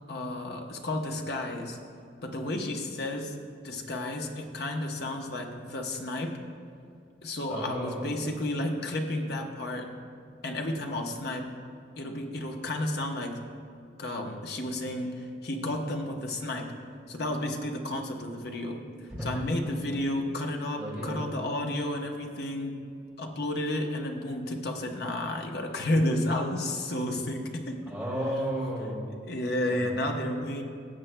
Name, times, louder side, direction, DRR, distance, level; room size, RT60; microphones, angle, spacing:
voice 1, 0.1-1.8 2.2-3.4 3.6-6.4 7.2-9.9 10.4-11.5 12.0-13.4 14.0-16.7 17.1-18.8 19.2-22.8 23.2-27.8 29.2-30.6, left 1 dB, 55° left, 2 dB, 0.9 m, -32 dB
voice 2, 7.5-8.1 19.1-19.4 20.7-21.2 27.9-29.0 29.7-30.0, equal, 5° right, -7 dB, 2.5 m, -33 dB
17.0 x 7.7 x 2.2 m, 2.3 s
head